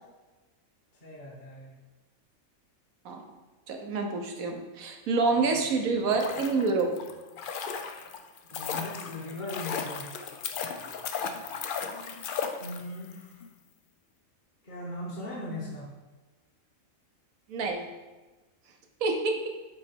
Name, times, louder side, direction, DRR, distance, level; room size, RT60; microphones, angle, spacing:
voice 1, 1.0-1.7 5.7-5.9 8.5-10.3 12.6-13.3 14.6-15.9, left 1 dB, 35° left, -6 dB, 1.1 m, -39 dB
voice 2, 3.7-7.0 11.2-11.3 17.5-17.9 19.0-19.3, right 4 dB, 80° right, 3 dB, 1.3 m, -27 dB
sound 1, 6.0-13.1 13.4-13.5, left 6 dB, 85° left, 0.4 m, -36 dB
7.1 x 3.1 x 4.4 m, 1.2 s
omnidirectional pair, 1.4 m